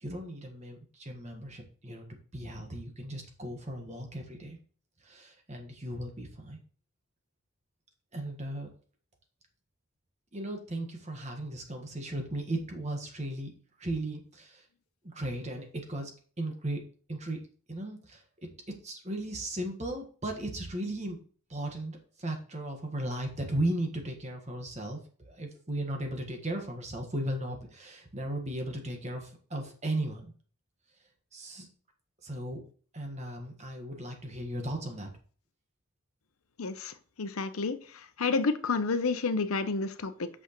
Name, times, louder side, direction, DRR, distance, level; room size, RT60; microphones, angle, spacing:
voice 1, 0.0-4.6 5.0-6.6 8.1-8.7 10.3-13.5 13.8-14.6 15.0-16.1 16.4-16.8 17.1-17.4 17.7-18.2 18.8-21.2 21.5-30.3 31.3-31.7 32.2-32.6 32.9-35.1, right 1 dB, 30° right, 3 dB, 1.4 m, -36 dB
voice 2, 36.6-37.8 38.2-40.3, left 4 dB, 85° left, 11 dB, 0.7 m, -30 dB
8.1 x 6.2 x 3.0 m, 0.42 s
head